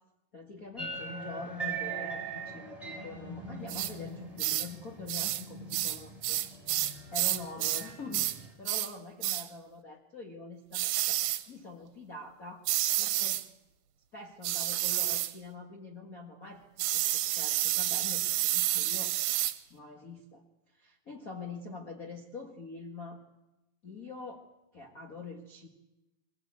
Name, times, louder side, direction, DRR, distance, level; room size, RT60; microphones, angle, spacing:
voice 1, 0.3-6.4 6.7-11.2 11.5-12.7 13.0-13.4 14.1-19.2 19.7-20.4 20.7-23.2 23.8-24.4 24.7-25.7, left 3 dB, 55° left, 2 dB, 0.9 m, -45 dB
sound 1, 0.8-8.5, right 3 dB, ahead, 6.8 m, -41 dB
sound 2, 3.7-3.9 4.4-4.7 5.1-5.4 5.7-8.4 8.7-8.9 9.2-9.5 10.7-11.4 12.7-13.5 14.4-15.3 16.8-19.6, right 14 dB, 80° right, 2.8 m, -30 dB
23.0 x 16.0 x 8.6 m, 0.98 s
omnidirectional pair, 4.6 m